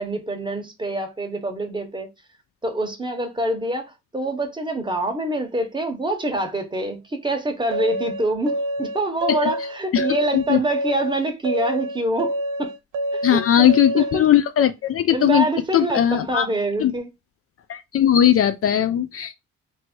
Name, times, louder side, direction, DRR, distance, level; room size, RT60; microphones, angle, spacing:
voice 1, 0.0-2.1 2.6-3.9 4.1-12.7 13.1-14.2 15.1-17.1, right 1 dB, 15° right, 1.2 m, -26 dB
sound 1, 7.7-14.3, right 1 dB, 70° right, 0.9 m, -27 dB
voice 2, 13.2-15.5 15.7-16.5 16.8-16.9 17.7-19.4, left 10 dB, 50° left, 0.5 m, -18 dB
3.0 x 2.7 x 4.4 m
cardioid pair, 90°, 30 cm